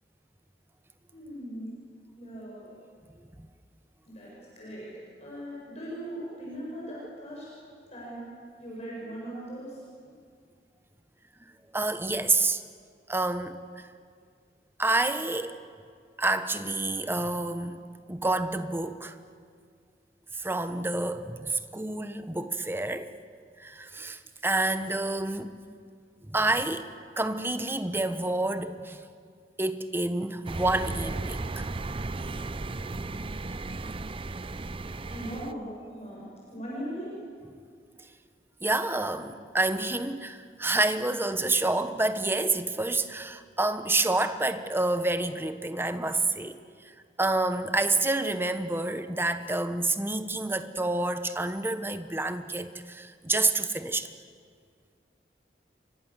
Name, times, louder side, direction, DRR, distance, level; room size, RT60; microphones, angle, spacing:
voice 1, 1.1-1.7 2.2-2.7 4.1-4.9 5.2-7.5 7.9-8.3 8.6-9.8 35.1-37.1, right 1 dB, 40° left, 7.8 m, -39 dB
voice 2, 11.7-12.6 13.1-13.9 14.8-15.6 16.2-17.8 18.1-19.2 20.4-23.1 23.6-25.6 26.2-26.9 27.2-29.0 29.6-31.7 38.6-46.6 47.2-54.1, right 2 dB, 15° right, 1.1 m, -28 dB
sound 1, 30.5-35.5, right 2 dB, 30° right, 0.6 m, -35 dB
29.5 x 24.5 x 7.5 m
head